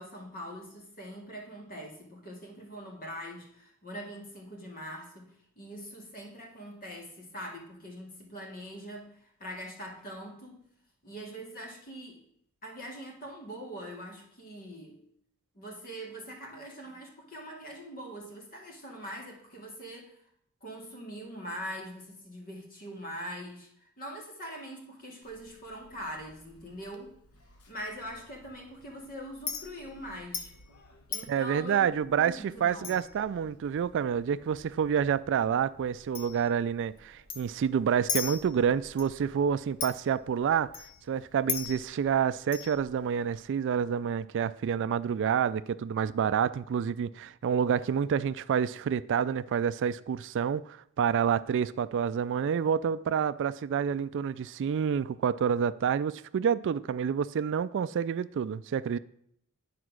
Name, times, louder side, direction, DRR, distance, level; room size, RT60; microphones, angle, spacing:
voice 1, 0.0-10.7 11.0-12.2 12.6-15.0 15.5-20.2 20.6-23.7 24.0-27.1 27.7-30.5 31.1-31.8 32.1-33.0, equal, 40° left, 2.3 m, -43 dB
Chink clink, 25.2-43.4, left 6 dB, 80° left, 1.2 m, -42 dB
voice 2, 31.3-40.7 41.1-59.0, right 7 dB, 55° right, 0.3 m, -28 dB
10.0 x 4.7 x 6.2 m
head